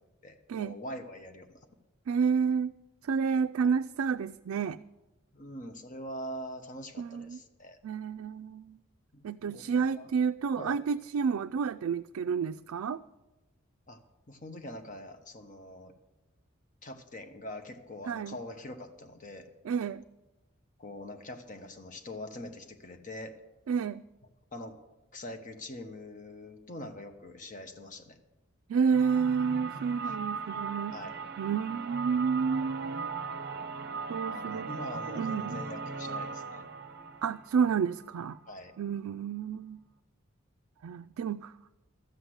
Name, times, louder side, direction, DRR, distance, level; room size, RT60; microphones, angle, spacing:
voice 1, 0.2-1.5 5.3-7.8 9.1-10.1 10.6-10.7 13.9-14.0 14.3-15.9 16.8-19.5 20.8-23.3 24.5-24.8 25.1-28.2 30.1-30.2 30.9-31.2 34.3-36.7 38.5-38.7, left 1 dB, 35° left, 6 dB, 1.0 m, -43 dB
voice 2, 2.1-2.7 3.0-4.8 7.0-7.4 7.8-8.8 9.2-13.0 18.1-18.4 19.6-20.0 23.7-24.0 28.7-31.0 31.4-33.1 34.1-34.7 35.1-35.6 37.2-38.4 38.8-39.8 40.8-41.5, right 6 dB, 80° right, 7 dB, 0.3 m, -30 dB
sound 1, 28.9-38.6, right 4 dB, 50° right, 0.7 m, -38 dB
13.0 x 8.1 x 7.8 m, 1.0 s
head